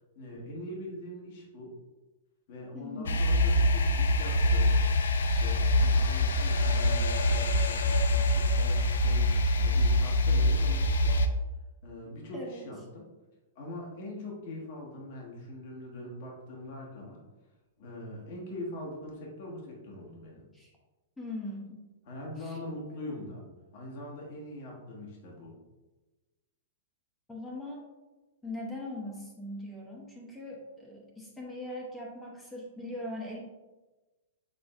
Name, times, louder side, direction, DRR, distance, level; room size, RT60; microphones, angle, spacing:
voice 1, 0.1-1.7 2.5-4.8 5.2-11.2 11.8-13.0 13.5-17.2 17.8-20.5 22.0-23.5 23.7-25.6, left 1 dB, 55° left, -2 dB, 1.4 m, -42 dB
voice 2, 2.7-3.2 12.3-12.6 20.5-20.7 21.2-21.9 22.4-22.6 27.3-27.8 28.4-33.4, left 1 dB, 10° left, -3 dB, 0.8 m, -40 dB
sound 1, 3.1-11.3, left 1 dB, 80° left, 0.4 m, -25 dB
5.0 x 3.8 x 2.4 m, 1.1 s
hypercardioid pair, 130°, 0 cm